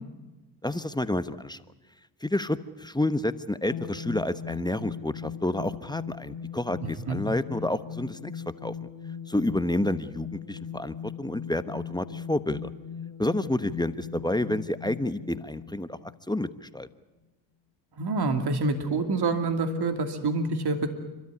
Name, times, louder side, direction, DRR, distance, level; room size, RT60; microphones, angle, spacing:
voice 1, 0.6-1.6 2.2-8.9 9.3-12.7 13.2-16.0 16.3-16.9, left 1 dB, 10° left, 12 dB, 1.1 m, -29 dB
sound 1, 3.7-16.5, left 7 dB, 80° left, 2.7 m, -40 dB
voice 2, 6.8-7.2 18.0-20.9, right 3 dB, 55° right, 6 dB, 2.7 m, -27 dB
29.5 x 13.0 x 9.7 m, 1.1 s
supercardioid pair, 60°, 46 cm